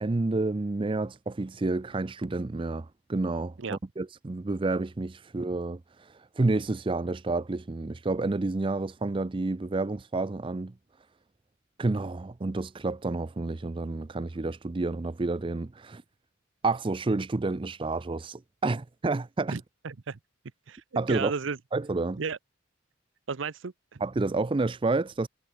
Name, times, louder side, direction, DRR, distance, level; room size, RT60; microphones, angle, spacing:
voice 1, 0.0-6.1 6.4-10.7 11.8-16.0 16.6-19.6 20.9-21.3 21.7-22.2 24.0-25.3, right 3 dB, 25° right, 0.5 m, -29 dB
voice 2, 19.5-20.2 20.7-21.6 22.2-22.4 23.3-24.0, right 5 dB, 75° right, 0.7 m, -34 dB
head